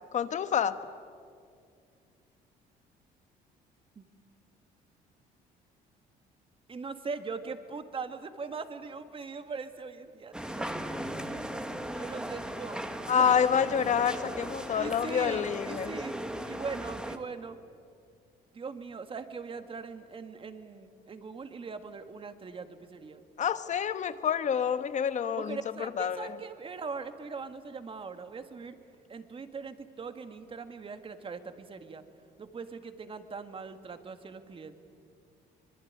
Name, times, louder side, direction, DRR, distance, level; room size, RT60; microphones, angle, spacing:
voice 1, 0.1-0.8 13.1-16.0 23.4-25.6 26.0-26.4, left 8 dB, 45° left, 12 dB, 1.2 m, -28 dB
voice 2, 6.7-10.7 11.9-12.8 13.2-13.4 14.7-16.2 16.5-17.6 18.5-23.2 25.4-28.7 29.1-32.0 32.4-34.7, right 4 dB, 30° right, 8 dB, 1.9 m, -41 dB
sound 1, 10.3-17.2, right 1 dB, 5° right, 1.6 m, -37 dB
25.0 x 21.5 x 9.7 m, 2.3 s
cardioid pair, 110°, 17 cm